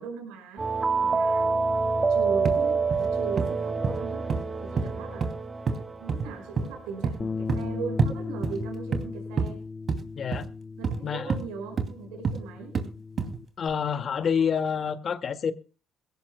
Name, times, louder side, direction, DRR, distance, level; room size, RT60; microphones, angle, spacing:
voice 1, 0.0-1.5 2.1-5.4 6.0-9.6 10.8-12.8, right 5 dB, 80° right, 5.6 m, -39 dB
sound 1, 0.6-7.1, right 4 dB, 30° right, 2.2 m, -27 dB
sound 2, 2.4-2.6 2.9-3.1 3.4-3.5 3.8-4.0 4.3-4.4 4.8-5.3 5.7-5.8 6.1-6.3 6.6-6.7 7.0-7.2 7.5-7.7 8.0-8.1 8.4-9.1 9.4-9.5 9.9-10.0 10.3-10.5 10.8-11.0 11.3-11.4 11.8-11.9 12.2-12.4 12.7-12.9 13.2-13.4 13.7-13.8, right 4 dB, 50° right, 2.6 m, -27 dB
sound 3, 7.2-13.4, left 4 dB, 30° left, 0.9 m, -37 dB
voice 2, 10.2-10.5 11.0-11.4 13.6-15.5, left 7 dB, 50° left, 2.0 m, -27 dB
22.0 x 17.0 x 2.2 m
hypercardioid pair, 55°, 0 cm